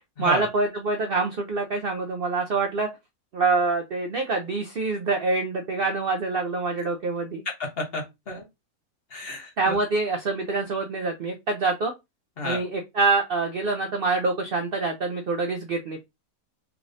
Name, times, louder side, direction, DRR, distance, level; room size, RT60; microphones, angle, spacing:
voice 1, 0.2-2.9 3.3-7.4 9.6-11.9 12.4-16.0, right 3 dB, 60° right, 3 dB, 0.6 m, -25 dB
voice 2, 7.6-8.4 9.1-9.7 12.4-12.6, left 2 dB, 45° left, 1 dB, 1.1 m, -32 dB
3.6 x 3.2 x 2.5 m, 0.21 s
omnidirectional pair, 1.6 m